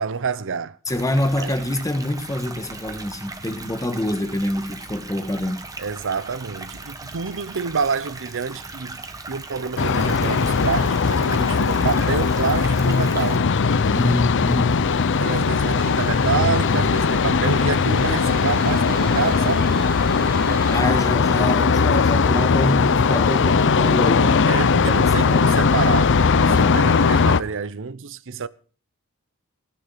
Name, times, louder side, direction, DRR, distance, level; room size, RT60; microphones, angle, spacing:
voice 1, 0.0-0.8 1.4-1.5 5.8-13.5 15.2-19.7 24.5-28.5, right 5 dB, 60° right, 0.8 m, -28 dB
voice 2, 0.9-5.7 13.9-14.8 20.7-24.6 24.8-25.7 26.4-26.8, left 1 dB, 15° left, 1.4 m, -26 dB
sound 1, 0.9-13.4, right 3 dB, 15° right, 1.4 m, -38 dB
sound 2, 9.8-27.4, left 5 dB, 55° left, 0.6 m, -19 dB
sound 3, 15.3-20.8, right 4 dB, 40° right, 1.3 m, -38 dB
16.5 x 10.5 x 5.7 m
head